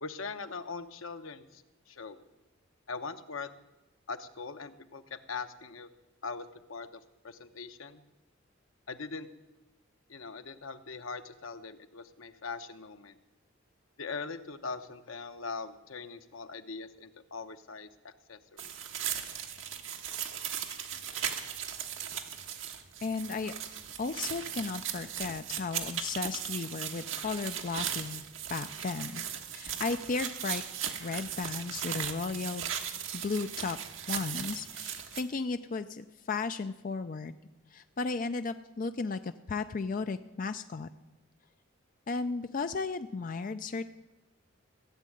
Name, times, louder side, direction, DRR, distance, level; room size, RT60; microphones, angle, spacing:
voice 1, 0.0-2.2 2.9-3.5 4.1-5.9 6.2-8.0 8.9-9.3 10.1-13.2 14.0-18.7, left 4 dB, 85° left, 9 dB, 0.9 m, -41 dB
sound 1, 18.6-35.2, right 9 dB, 75° right, 1.3 m, -37 dB
voice 2, 23.0-23.5 24.0-28.2 28.5-29.2 29.5-30.6 31.0-32.7 33.1-33.8 34.1-37.4 37.7-40.9 42.1-43.8, left 4 dB, 40° left, 9 dB, 0.4 m, -35 dB
16.0 x 7.4 x 9.2 m, 1.0 s
head